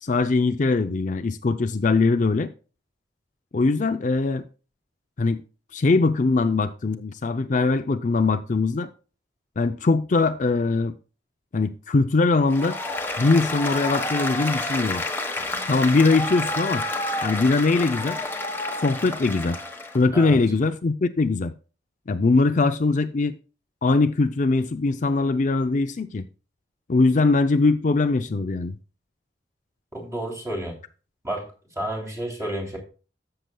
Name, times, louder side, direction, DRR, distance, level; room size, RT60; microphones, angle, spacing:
voice 1, 0.0-2.5 3.5-4.4 5.2-5.4 5.7-8.9 9.6-10.9 11.5-12.8 13.2-15.0 15.7-16.8 17.2-18.2 18.8-19.6 19.9-21.5 22.1-23.3 23.8-26.2 26.9-28.8, left 3 dB, 45° left, 0.5 m, -21 dB
Applause, 12.5-20.0, left 2 dB, 10° left, 1.2 m, -29 dB
voice 2, 29.9-30.8 31.2-31.5 31.7-32.8, right 1 dB, 15° right, 3.0 m, -30 dB
13.5 x 6.8 x 2.3 m
head